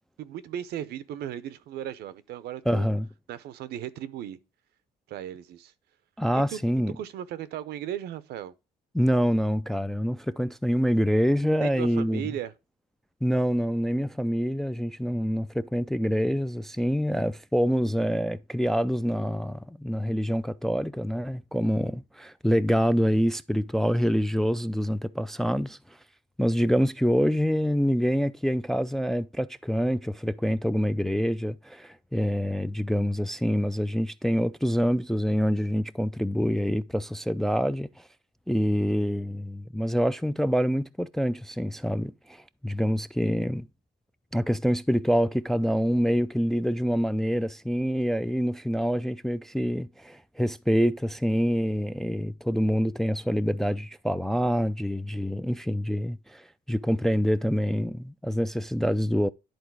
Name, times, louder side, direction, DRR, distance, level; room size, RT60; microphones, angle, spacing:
voice 1, 0.2-2.8 3.3-4.4 5.1-5.7 6.5-6.6 7.0-8.5 11.6-12.5, right 11 dB, 70° right, 0.7 m, -36 dB
voice 2, 2.7-3.1 6.2-7.0 8.9-12.2 13.2-25.8 26.4-38.1 38.5-43.7 44.3-59.3, equal, ahead, 0.3 m, -26 dB
10.5 x 3.9 x 4.7 m
cardioid pair, 110°, 17 cm